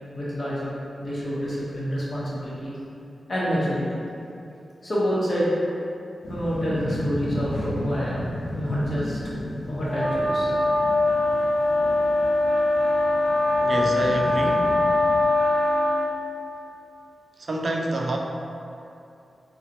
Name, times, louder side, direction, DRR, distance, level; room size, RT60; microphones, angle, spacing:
voice 1, 0.1-0.7 1.0-2.8 3.3-4.0 4.8-5.7 6.3-8.2 8.5-9.2 9.6-10.5, equal, 50° left, -8 dB, 1.0 m, -27 dB
sound 1, 6.2-15.2, left 1 dB, 75° left, 0.4 m, -34 dB
sound 2, 9.9-16.1, left 2 dB, 5° left, 1.0 m, -22 dB
voice 2, 13.6-14.8 17.4-18.2, right 1 dB, 60° right, 1 dB, 0.3 m, -27 dB
3.9 x 2.1 x 2.8 m, 2.7 s
cardioid pair, 50°, 0 cm